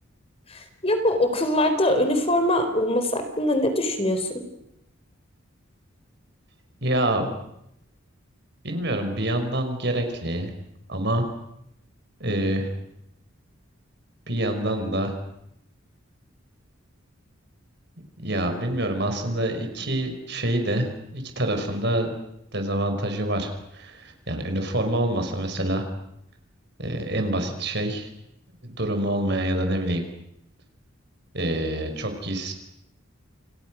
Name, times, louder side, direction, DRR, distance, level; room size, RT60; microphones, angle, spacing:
voice 1, 0.5-4.4, left 1 dB, 30° left, 7 dB, 4.2 m, -23 dB
voice 2, 6.8-7.4 8.6-10.5 10.9-11.3 12.2-12.7 14.3-15.2 18.2-22.2 22.5-25.9 26.8-28.1 28.6-30.0 31.3-32.5, right 1 dB, 55° right, 6 dB, 5.6 m, -26 dB
29.5 x 29.5 x 6.4 m, 0.80 s
head